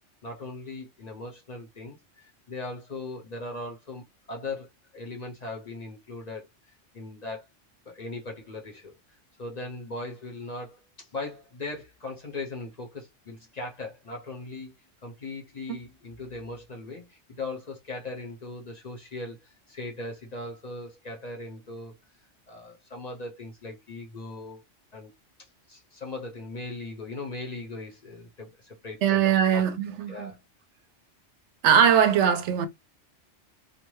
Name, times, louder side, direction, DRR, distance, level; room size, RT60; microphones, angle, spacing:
voice 1, 0.2-4.7 4.9-6.5 6.9-7.5 7.9-14.7 15.0-21.9 22.5-24.6 24.9-25.1 25.4-29.7 30.1-30.4, left 2 dB, 45° left, 0.6 m, -39 dB
voice 2, 29.0-30.3 31.6-32.7, right 8 dB, 75° right, 0.9 m, -21 dB
2.5 x 2.2 x 3.0 m
omnidirectional pair, 1.2 m